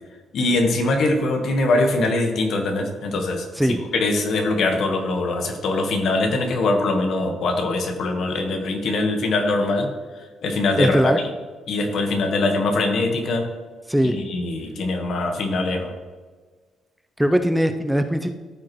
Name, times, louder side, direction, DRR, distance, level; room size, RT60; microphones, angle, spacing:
voice 1, 0.3-9.9 10.1-11.0 11.7-13.5 14.0-15.9, left 2 dB, 65° left, 4 dB, 1.3 m, -22 dB
voice 2, 10.8-11.2 13.9-14.1 17.2-18.3, equal, 5° right, 7 dB, 0.5 m, -20 dB
14.0 x 5.0 x 3.1 m, 1.4 s
cardioid pair, 90°, 0 cm